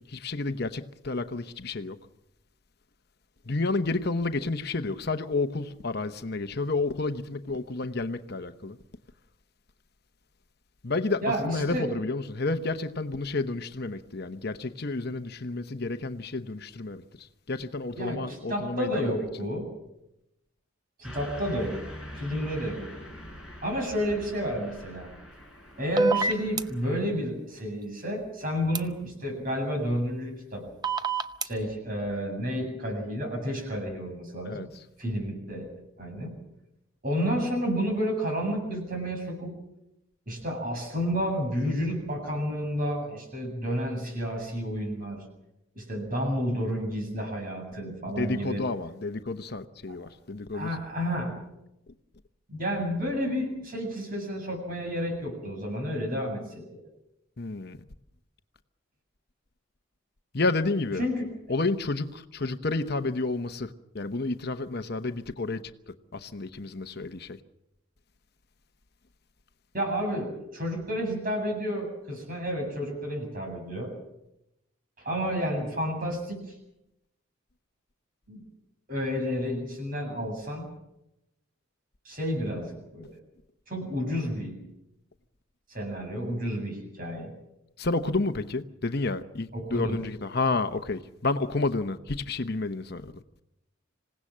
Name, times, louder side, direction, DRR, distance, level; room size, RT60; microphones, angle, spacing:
voice 1, 0.0-2.0 3.4-8.8 10.8-19.0 34.4-34.8 48.2-50.7 57.4-57.8 60.3-61.0 61.5-67.4 87.8-93.2, left 3 dB, 50° left, 0.9 m, -30 dB
voice 2, 11.2-11.9 18.0-19.7 21.0-21.8 22.2-22.9 23.6-25.1 25.8-30.7 31.4-34.6 35.0-35.7 36.0-36.4 37.0-39.5 40.3-45.2 45.7-48.6 50.5-51.3 52.5-56.8 61.0-61.3 69.7-73.9 75.0-76.4 78.3-78.4 78.9-80.7 82.0-83.2 83.7-84.6 85.7-87.3 89.5-90.0, equal, 40° right, 8.0 m, -31 dB
Car passing by / Truck, 21.0-26.9, equal, 5° right, 5.2 m, -44 dB
sound 1, 26.0-26.6 28.7-28.8 30.8-31.4, right 3 dB, 20° right, 0.7 m, -24 dB
27.0 x 17.5 x 7.5 m
head